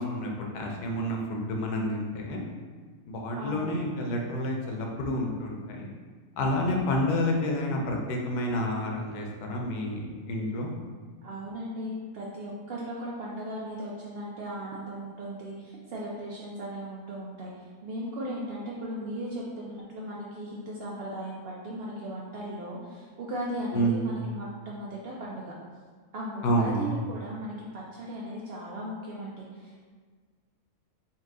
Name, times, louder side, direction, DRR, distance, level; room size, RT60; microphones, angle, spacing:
voice 1, 0.0-2.4 3.1-5.9 6.4-10.7 23.7-24.0 26.4-27.0, equal, 90° left, 0 dB, 1.2 m, -29 dB
voice 2, 3.4-3.7 11.2-17.5 17.8-25.4 26.1-29.9, right 1 dB, 75° right, -5 dB, 0.5 m, -37 dB
4.2 x 2.3 x 3.7 m, 1.5 s
omnidirectional pair, 1.6 m